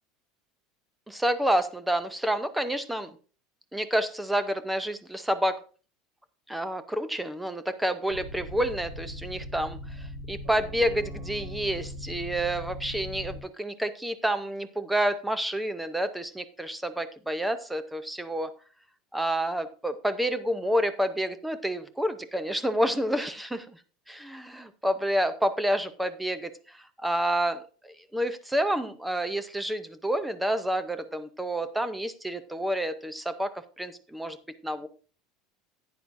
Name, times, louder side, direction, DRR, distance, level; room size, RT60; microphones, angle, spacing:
voice 1, 1.1-3.1 3.7-5.6 6.5-18.5 19.1-23.8 24.1-26.5 27.0-34.4 34.6-34.9, right 1 dB, 5° right, 11 dB, 0.5 m, -29 dB
sound 1, 8.1-13.4, equal, 75° right, 2.5 m, -39 dB
10.5 x 9.4 x 2.5 m, 0.38 s
cardioid pair, 175°, 0 cm